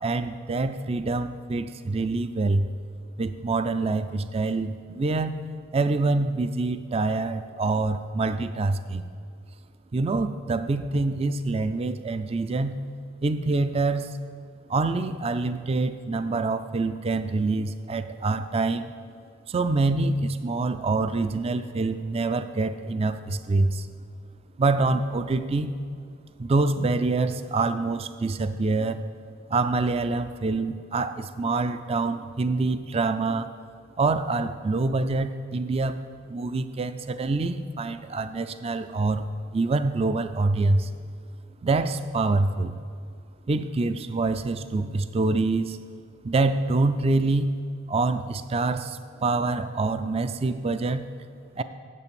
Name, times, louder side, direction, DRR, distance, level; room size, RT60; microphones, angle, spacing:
voice 1, 0.0-2.7 3.2-5.3 5.7-9.0 9.9-12.8 13.2-14.2 14.7-18.9 19.5-23.9 24.6-25.7 26.4-29.0 29.5-33.5 34.0-36.0 36.3-40.9 41.6-42.7 43.5-45.8 46.2-47.5 47.9-51.1 51.6-51.7, right 3 dB, 30° right, 11 dB, 0.3 m, -26 dB
8.3 x 7.9 x 6.9 m, 2.2 s
head